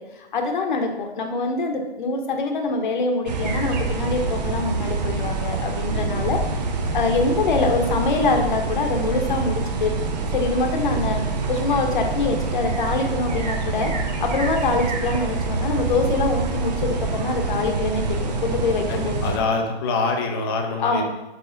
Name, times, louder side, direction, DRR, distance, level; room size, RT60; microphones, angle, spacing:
voice 1, 0.2-6.4 6.9-9.9 10.3-11.2 11.5-13.9 14.2-19.3 20.8-21.0, left 3 dB, 45° left, 4 dB, 1.1 m, -24 dB
sound 1, 3.3-19.4, right 3 dB, 40° right, 0.8 m, -26 dB
voice 2, 18.9-21.0, left 3 dB, 20° left, 3 dB, 0.7 m, -25 dB
5.1 x 4.7 x 5.1 m, 1.0 s
hypercardioid pair, 150°, 32 cm